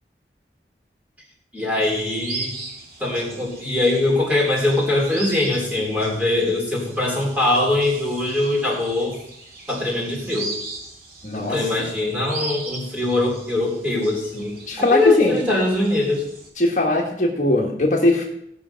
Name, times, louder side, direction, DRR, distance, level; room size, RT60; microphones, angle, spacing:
voice 1, 1.5-2.5 3.0-9.2 9.7-10.5 11.3-16.3, left 2 dB, 10° right, -3 dB, 3.9 m, -22 dB
sound 1, 1.8-16.5, right 3 dB, 55° right, 3.1 m, -38 dB
voice 2, 11.2-11.9 14.7-15.4 16.6-18.3, left 1 dB, 45° left, -1 dB, 1.6 m, -20 dB
17.5 x 6.2 x 5.7 m, 0.77 s
head